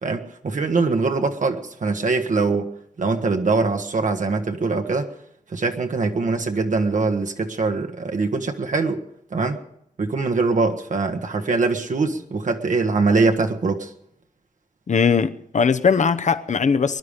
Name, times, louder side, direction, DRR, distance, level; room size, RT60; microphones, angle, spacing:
voice 1, 0.0-2.7 3.0-5.1 5.5-9.0 9.3-9.6 10.0-13.9, right 3 dB, 70° right, 1.3 m, -22 dB
voice 2, 14.9-17.0, left 6 dB, 65° left, 0.8 m, -19 dB
21.5 x 11.5 x 5.1 m
wide cardioid pair, 115°, 13 cm